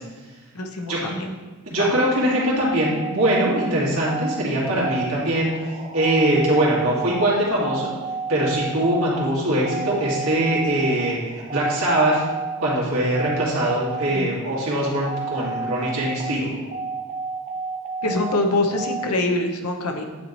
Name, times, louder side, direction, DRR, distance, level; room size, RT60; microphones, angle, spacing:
voice 1, 0.5-1.3 1.8-1.9 14.1-14.3 18.0-20.0, left 2 dB, 85° left, 4 dB, 0.8 m, -24 dB
voice 2, 1.7-5.5 5.9-7.9 8.3-12.2 12.6-16.5, right 1 dB, 70° right, -6 dB, 2.1 m, -22 dB
sound 1, 2.8-19.0, right 4 dB, 30° right, 0.5 m, -32 dB
9.3 x 3.1 x 4.0 m, 1.3 s
head